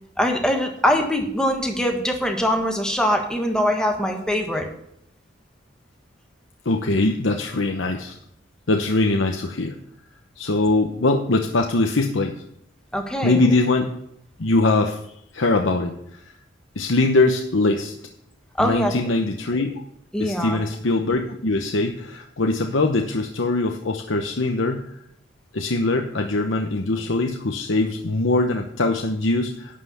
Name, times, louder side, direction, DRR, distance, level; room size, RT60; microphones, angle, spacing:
voice 1, 0.2-4.7 12.9-13.5 18.6-19.0 20.1-20.6, equal, 5° left, 2 dB, 1.6 m, -22 dB
voice 2, 6.6-8.2 8.7-9.8 10.4-12.4 13.2-13.9 14.4-15.0 15.3-16.2 16.8-17.9 18.6-19.7 20.2-24.9 25.5-29.8, left 2 dB, 80° left, 3 dB, 1.0 m, -22 dB
11.5 x 5.8 x 8.4 m, 0.74 s
head